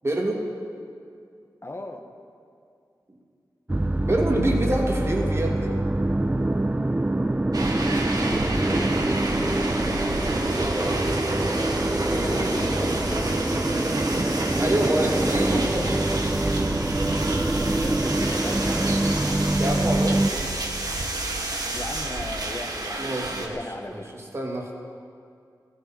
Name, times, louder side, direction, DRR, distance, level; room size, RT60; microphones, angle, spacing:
voice 1, 0.0-0.4 4.0-5.7 10.1-12.8 14.6-15.9 19.6-20.6 23.0-23.6 23.9-24.7, right 1 dB, 35° right, 0 dB, 2.5 m, -28 dB
voice 2, 1.6-2.0 8.2-9.0 12.1-13.3 17.7-19.0 21.7-24.1, left 2 dB, 35° left, 4 dB, 1.4 m, -37 dB
sound 1, 3.7-20.3, right 1 dB, 20° right, 0.5 m, -25 dB
sound 2, 7.5-23.5, right 2 dB, 55° right, 1.7 m, -29 dB
14.5 x 13.5 x 6.1 m, 2.3 s
cardioid pair, 55°, 7 cm